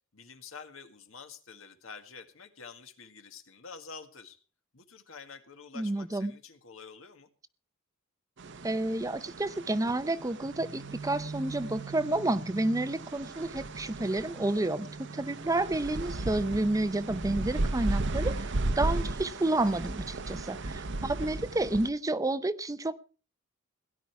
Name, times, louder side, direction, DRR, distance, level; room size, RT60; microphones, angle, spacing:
voice 1, 0.1-4.4 4.7-7.3, left 5 dB, 80° left, 7 dB, 1.8 m, -48 dB
voice 2, 5.7-6.3 8.6-14.9 15.1-18.5 18.8-23.0, right 2 dB, 15° right, 14 dB, 0.6 m, -30 dB
sound 1, 8.4-21.9, right 2 dB, 60° right, 0.9 m, -35 dB
17.0 x 11.0 x 4.7 m, 0.38 s
head